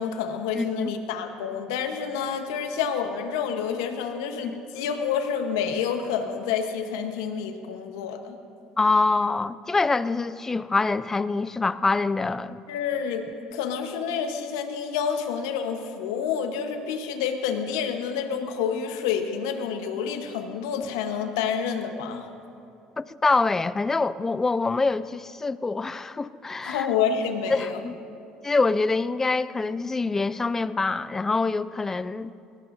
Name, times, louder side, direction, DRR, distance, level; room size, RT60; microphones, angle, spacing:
voice 1, 0.0-8.4 12.7-22.3 26.6-27.8, left 7 dB, 85° left, 6 dB, 1.1 m, -28 dB
voice 2, 0.5-0.9 4.4-4.6 8.8-12.6 23.0-26.9 27.5-28.0 28.4-32.3, left 3 dB, 20° left, 16 dB, 0.4 m, -25 dB
20.5 x 18.0 x 2.7 m, 2.7 s
supercardioid pair, 85°, 2 cm